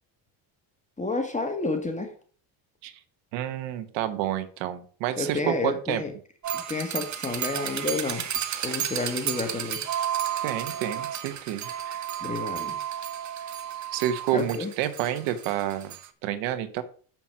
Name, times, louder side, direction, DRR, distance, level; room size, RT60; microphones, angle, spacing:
voice 1, 1.0-2.1 5.2-6.1 6.5-8.3 8.6-9.8 12.2-12.8 14.3-14.7, left 3 dB, 15° left, 4 dB, 1.6 m, -30 dB
voice 2, 3.3-6.0 10.4-12.0 13.9-15.9 16.2-16.8, right 11 dB, 85° right, 12 dB, 1.2 m, -29 dB
sound 1, 6.4-16.1, right 9 dB, 40° right, 1.0 m, -32 dB
7.2 x 6.0 x 6.0 m, 0.44 s
cardioid pair, 100°, 44 cm